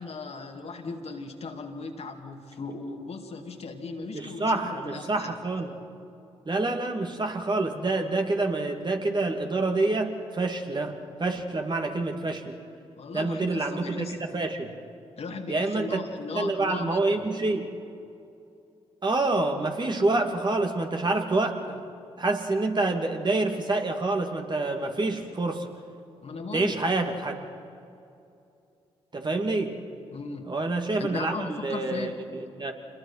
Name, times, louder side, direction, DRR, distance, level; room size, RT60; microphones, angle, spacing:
voice 1, 0.0-5.4 13.0-14.1 15.2-17.2 26.2-26.8 30.1-30.5 31.0-32.1, left 4 dB, 55° left, 3 dB, 2.4 m, -37 dB
voice 2, 4.1-5.8 6.5-10.9 11.2-12.6 13.1-14.1 14.3-14.7 15.5-16.0 16.3-17.7 19.0-21.8 22.2-25.7 26.5-27.4 29.1-29.8 30.4-32.7, right 2 dB, 35° right, 3 dB, 2.6 m, -27 dB
26.5 x 21.5 x 5.8 m, 2.7 s
hypercardioid pair, 45°, 13 cm